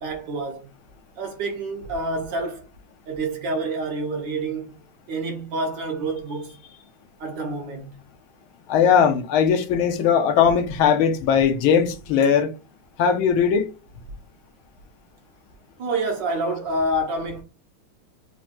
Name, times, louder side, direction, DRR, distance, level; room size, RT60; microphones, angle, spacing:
voice 1, 0.0-0.7 1.2-2.7 3.1-4.7 5.1-6.6 7.2-8.0 15.8-17.4, right 2 dB, 65° right, 1.4 m, -28 dB
voice 2, 8.7-12.5 13.0-13.7, left 7 dB, 80° left, 1.4 m, -19 dB
4.5 x 2.8 x 2.5 m
omnidirectional pair, 2.3 m